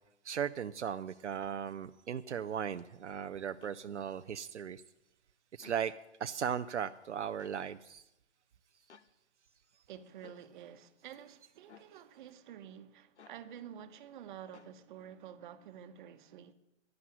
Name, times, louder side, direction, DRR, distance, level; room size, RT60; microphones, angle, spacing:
voice 1, 0.2-4.8 5.5-5.9 6.2-8.0, right 8 dB, 75° right, 0.6 m, -37 dB
sound 1, 3.6-3.8 5.5-5.8 7.4-7.6 8.9-9.1 10.2-10.4 11.7-11.9 13.2-13.4 14.5-14.7, left 7 dB, 75° left, 1.0 m, -57 dB
voice 2, 9.9-16.5, right 9 dB, 45° right, 1.3 m, -50 dB
11.5 x 11.0 x 9.8 m
figure-of-eight pair, 120°, 35 cm